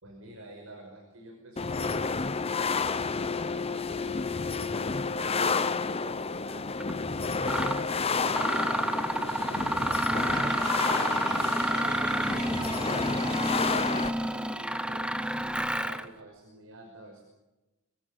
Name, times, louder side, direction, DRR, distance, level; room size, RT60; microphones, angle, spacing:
voice 1, 0.0-3.2 3.9-6.7 7.0-10.0 10.3-13.7 14.1-17.2, right 1 dB, 70° right, 2 dB, 5.6 m, -49 dB
sound 1, 1.6-14.1, left 4 dB, 30° left, 0.8 m, -30 dB
Mechanisms, 6.8-6.9 7.4-7.8 8.3-16.1, right 1 dB, 5° right, 0.9 m, -29 dB
sound 2, 10.3-14.5, right 3 dB, 20° right, 1.5 m, -40 dB
26.0 x 22.5 x 6.8 m, 1.0 s
head